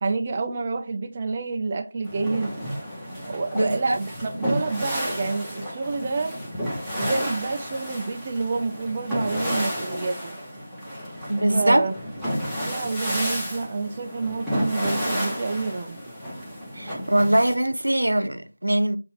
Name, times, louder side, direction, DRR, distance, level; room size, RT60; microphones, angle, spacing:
voice 1, 0.0-2.5 3.3-6.4 7.0-10.4 11.5-11.9 12.6-16.0, right 3 dB, 25° right, 0.4 m, -28 dB
sound 1, 2.0-17.5, equal, ahead, 0.9 m, -31 dB
voice 2, 3.5-4.0 11.3-11.9 16.7-19.0, right 1 dB, 75° right, 0.7 m, -22 dB
6.8 x 2.6 x 2.9 m
figure-of-eight pair, 170°, 0 cm